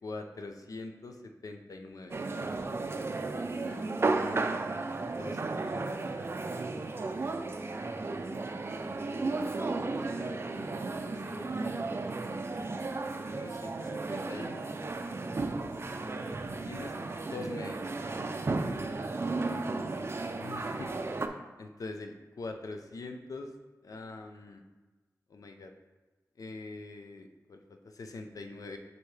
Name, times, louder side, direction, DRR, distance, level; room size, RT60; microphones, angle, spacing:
voice 1, 0.0-2.2 5.1-5.9 13.3-14.6 16.6-17.0 17.3-17.8 20.4-20.9 21.6-23.5 23.8-24.6 25.3-25.7 26.4-28.8, left 3 dB, 75° left, 5 dB, 0.6 m, -43 dB
sound 1, 2.1-21.3, right 3 dB, 40° right, 0.5 m, -34 dB
voice 2, 3.4-4.2 8.8-12.5 15.7-16.1 19.1-20.3, right 1 dB, 10° left, -12 dB, 2.1 m, -48 dB
8.2 x 4.2 x 3.3 m, 1.2 s
wide cardioid pair, 100°, 6 cm